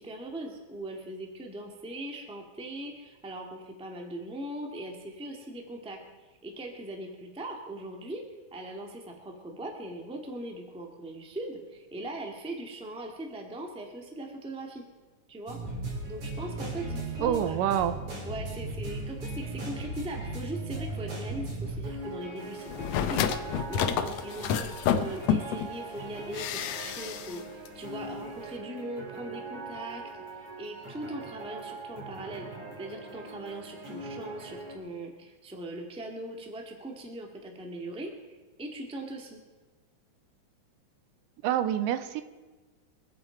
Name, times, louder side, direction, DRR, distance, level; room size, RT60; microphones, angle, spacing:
voice 1, 0.0-6.0 6.4-8.2 8.5-14.8 15.3-15.6 16.0-17.6 18.2-23.3 23.7-30.0 30.6-39.4, right 1 dB, 5° right, 1 dB, 0.8 m, -40 dB
sound 1, 15.5-34.8, right 2 dB, 60° right, 5.3 m, -39 dB
voice 2, 17.2-17.9 41.4-42.2, right 10 dB, 90° right, 12 dB, 2.3 m, -27 dB
sound 2, 22.7-25.7 26.3-27.4 27.7-27.8, left 8 dB, 80° left, 1.5 m, -29 dB
25.5 x 8.8 x 4.5 m, 1.3 s
omnidirectional pair, 3.9 m